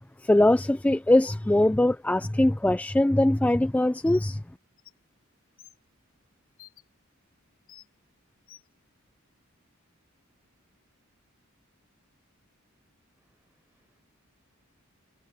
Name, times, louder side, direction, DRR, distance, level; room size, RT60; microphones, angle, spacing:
voice 1, 0.2-4.4, left 1 dB, 5° left, 0.3 m, -22 dB
Bird, 4.0-4.4 4.8-4.9 5.6-5.8 6.6-6.8 7.7-7.9 8.5-8.7, left 12 dB, 75° left, 3.2 m, -50 dB
voice 2, 13.2-14.0, right 1 dB, 10° right, 5.0 m, -74 dB
head